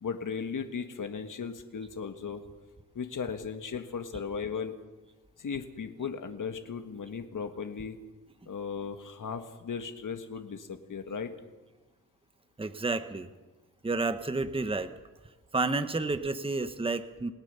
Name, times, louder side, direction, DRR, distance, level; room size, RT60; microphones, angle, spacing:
voice 1, 0.0-2.4 3.0-4.8 5.4-8.0 8.5-11.3, left 6 dB, 60° left, 6 dB, 1.6 m, -36 dB
voice 2, 12.6-13.3 13.8-14.9 15.5-17.3, right 3 dB, 15° right, 10 dB, 1.0 m, -30 dB
29.5 x 18.0 x 6.9 m, 1.2 s
wide cardioid pair, 165°, 35 cm